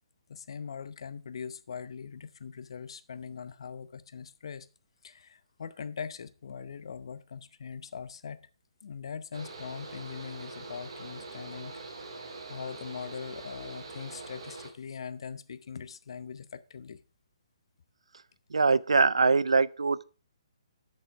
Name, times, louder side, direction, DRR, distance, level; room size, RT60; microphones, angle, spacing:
voice 1, 0.3-4.7 5.0-8.4 8.8-11.8 12.5-17.0, left 6 dB, 60° left, 0.7 m, -41 dB
Mechanical fan, 9.3-14.7, right 3 dB, 65° right, 2.9 m, -43 dB
voice 2, 18.5-20.0, right 4 dB, 85° right, 0.4 m, -23 dB
8.3 x 6.7 x 4.6 m
hypercardioid pair, 145°, 3 cm